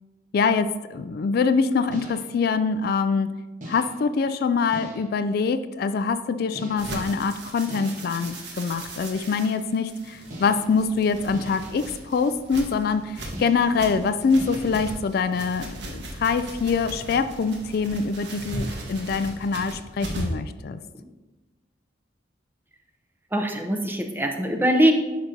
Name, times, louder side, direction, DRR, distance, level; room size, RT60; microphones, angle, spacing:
voice 1, 0.3-3.3 3.7-20.8, left 5 dB, 55° left, 11 dB, 0.3 m, -24 dB
sound 1, 1.9-2.4 3.6-4.1 4.7-5.2 6.5-7.1 7.7-8.3 10.3-10.8 11.3-11.8 13.3-13.8 14.4-14.7, equal, 45° right, 1.3 m, -40 dB
sound 2, 6.8-20.4, right 1 dB, 65° right, 1.3 m, -37 dB
voice 2, 23.3-24.9, right 1 dB, 10° right, 3 dB, 0.7 m, -22 dB
10.5 x 5.1 x 2.8 m, 1.2 s
head